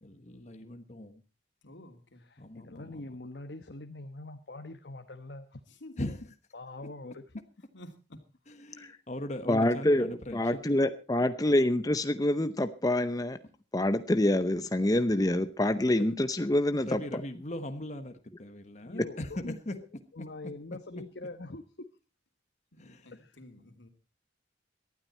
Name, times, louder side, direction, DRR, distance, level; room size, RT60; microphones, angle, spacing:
voice 1, 0.0-1.2 2.4-3.1 6.0-6.2 8.5-10.9 14.8-15.0 15.8-16.1 16.9-19.7 22.8-23.1, left 1 dB, 40° left, 8 dB, 1.3 m, -40 dB
voice 2, 1.6-2.2 5.7-6.2 7.7-8.2 22.7-23.9, left 1 dB, 85° left, 6 dB, 2.8 m, -51 dB
voice 3, 2.2-5.6 6.5-7.2 18.8-19.8 20.1-21.9 23.1-23.4, left 2 dB, 65° left, 7 dB, 1.1 m, -44 dB
voice 4, 9.5-13.4 13.7-17.0, left 1 dB, 20° left, 10 dB, 0.7 m, -26 dB
18.5 x 12.5 x 4.3 m, 0.33 s
head